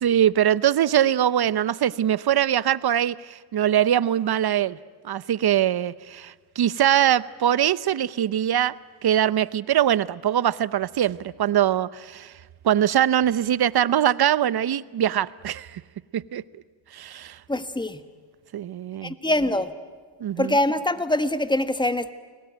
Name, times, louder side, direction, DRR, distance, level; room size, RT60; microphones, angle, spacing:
voice 1, 0.0-4.8 5.0-8.7 9.0-12.3 12.6-15.8 16.1-16.4 16.9-17.4 18.5-19.2 20.2-20.6, right 10 dB, 55° right, 0.8 m, -22 dB
voice 2, 17.5-18.0 19.0-19.7 20.4-22.1, left 1 dB, 10° left, 1.5 m, -24 dB
29.0 x 19.5 x 9.3 m
cardioid pair, 70°, 46 cm